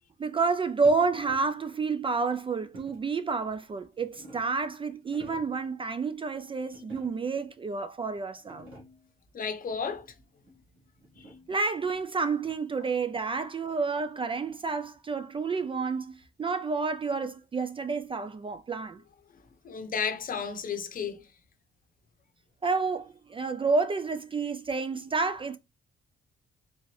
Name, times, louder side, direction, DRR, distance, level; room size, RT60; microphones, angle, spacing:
voice 1, 0.2-8.7 11.5-19.0 22.6-25.6, right 4 dB, 25° right, 0.3 m, -29 dB
sound 1, 0.8-1.7 2.7-3.2 3.8-4.6 5.0-5.7 6.7-7.4 8.0-8.1 8.4-9.1 10.5-11.6, equal, 80° right, 1.5 m, -50 dB
voice 2, 9.3-10.1 19.6-21.2, left 6 dB, 45° left, 0.7 m, -32 dB
3.6 x 2.5 x 3.2 m
cardioid pair, 90°, 20 cm